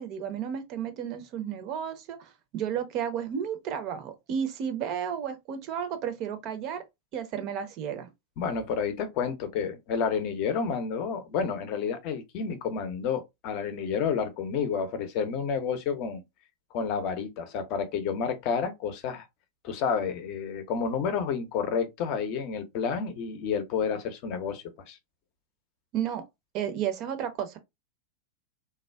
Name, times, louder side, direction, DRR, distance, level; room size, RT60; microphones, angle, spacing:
voice 1, 0.0-6.8 7.1-8.1 25.9-26.2 26.5-27.6, right 8 dB, 40° right, 0.6 m, -32 dB
voice 2, 8.4-16.2 16.7-19.2 19.6-25.0, left 6 dB, 45° left, 0.6 m, -30 dB
3.4 x 2.2 x 2.2 m
figure-of-eight pair, 90°, 0 cm